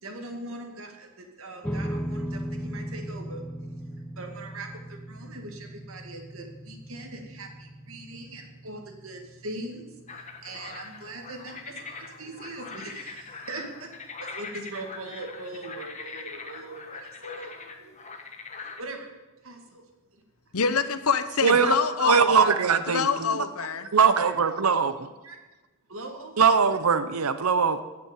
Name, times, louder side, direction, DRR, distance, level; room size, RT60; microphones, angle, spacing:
voice 1, 0.0-3.4 4.2-13.9 14.2-18.2 18.6-19.1 19.4-19.8 23.8-23.9 24.2-24.3 24.6-24.8 25.2-25.4 25.9-26.5, right 2 dB, 70° right, 3 dB, 2.2 m, -41 dB
sound 1, 1.6-14.2, equal, 5° left, 0.5 m, -39 dB
sound 2, 10.1-18.8, left 4 dB, 35° left, 1.2 m, -42 dB
voice 2, 20.5-22.5 22.9-23.8, left 5 dB, 80° left, 12 dB, 0.9 m, -26 dB
voice 3, 21.4-21.8 22.0-23.3 23.9-24.9 26.4-27.8, right 6 dB, 90° right, 11 dB, 0.8 m, -21 dB
14.5 x 6.1 x 8.9 m, 1.1 s
head